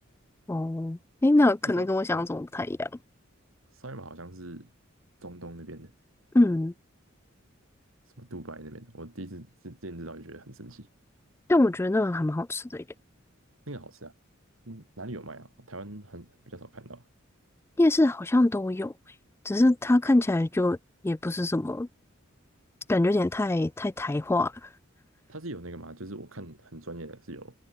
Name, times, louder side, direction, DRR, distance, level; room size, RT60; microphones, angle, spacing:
voice 1, 0.5-2.9 6.3-6.7 11.5-12.8 17.8-18.9 19.5-20.8 21.0-21.9 22.9-24.5, left 2 dB, 10° left, 0.3 m, -24 dB
voice 2, 1.6-2.2 3.7-4.7 5.2-5.9 8.2-10.9 13.7-14.1 14.6-17.0 25.3-27.5, right 2 dB, 75° right, 3.4 m, -42 dB
head